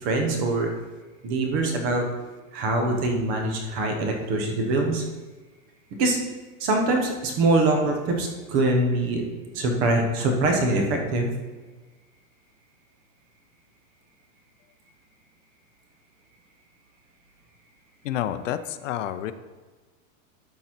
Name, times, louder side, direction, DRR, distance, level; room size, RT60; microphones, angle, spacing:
voice 1, 0.0-0.7 1.2-2.0 2.5-5.0 6.0-6.2 6.6-9.2 9.5-11.3, right 2 dB, 25° right, 3 dB, 0.8 m, -23 dB
voice 2, 18.0-19.3, left 11 dB, 70° left, 12 dB, 0.6 m, -29 dB
12.0 x 4.1 x 4.4 m, 1.3 s
supercardioid pair, 180°, 40 cm